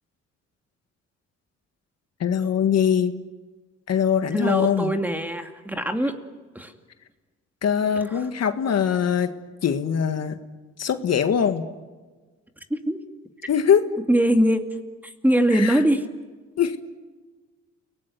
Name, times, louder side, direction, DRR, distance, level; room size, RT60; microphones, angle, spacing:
voice 1, 2.2-3.1 3.9-4.9 7.6-9.3 9.6-10.4 10.8-11.7 13.5-13.8 15.5-15.8 16.6-16.8, left 8 dB, 55° left, 8 dB, 1.8 m, -22 dB
voice 2, 4.3-6.1 6.5-6.7 8.1-8.3 12.7-13.0 14.1-14.6 15.0-16.1, right 1 dB, 5° right, 5 dB, 2.5 m, -22 dB
30.0 x 19.0 x 9.5 m, 1.3 s
cardioid pair, 90°, 30 cm